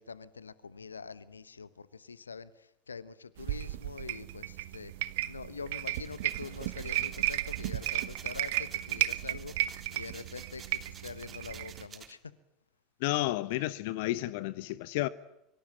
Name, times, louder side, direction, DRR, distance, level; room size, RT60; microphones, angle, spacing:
voice 1, 0.0-4.9 5.2-12.3, left 5 dB, 80° left, 1.1 m, -45 dB
sound 1, 3.4-11.9, right 16 dB, 60° right, 1.2 m, -34 dB
sound 2, 5.8-12.1, right 7 dB, 30° right, 3.5 m, -51 dB
voice 2, 13.0-15.1, left 17 dB, 60° left, 1.0 m, -31 dB
25.0 x 24.5 x 8.8 m
figure-of-eight pair, 75°, 0 cm